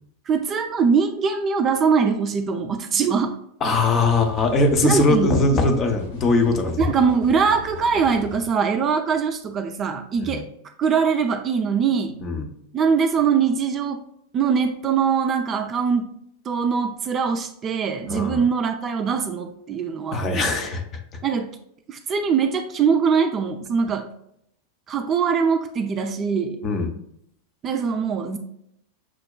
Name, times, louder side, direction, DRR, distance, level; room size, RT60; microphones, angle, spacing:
voice 1, 0.3-3.4 4.8-5.3 6.8-10.5 10.8-12.2 12.7-14.0 14.3-16.1 16.5-20.5 21.2-21.6 21.9-24.1 24.9-26.6 27.6-28.4, right 6 dB, 25° right, 6 dB, 0.3 m, -22 dB
voice 2, 3.6-6.9 10.2-10.4 12.2-12.5 18.1-18.4 20.1-20.8 26.6-26.9, left 2 dB, 25° left, 4 dB, 0.6 m, -21 dB
sound 1, 4.1-8.5, left 6 dB, 65° left, 1.2 m, -38 dB
6.2 x 2.1 x 2.2 m, 0.72 s
figure-of-eight pair, 90°, 0 cm